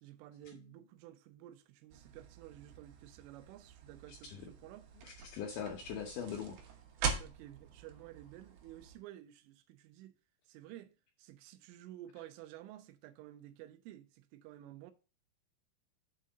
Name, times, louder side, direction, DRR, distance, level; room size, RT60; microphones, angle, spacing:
voice 1, 0.0-4.9 7.1-10.1 10.5-14.9, right 13 dB, 85° right, 3.2 m, -53 dB
sound 1, 1.9-9.0, right 6 dB, 70° right, 2.6 m, -43 dB
voice 2, 4.1-4.5 5.0-6.6, left 7 dB, 75° left, 2.3 m, -42 dB
7.4 x 4.2 x 6.4 m
omnidirectional pair, 5.5 m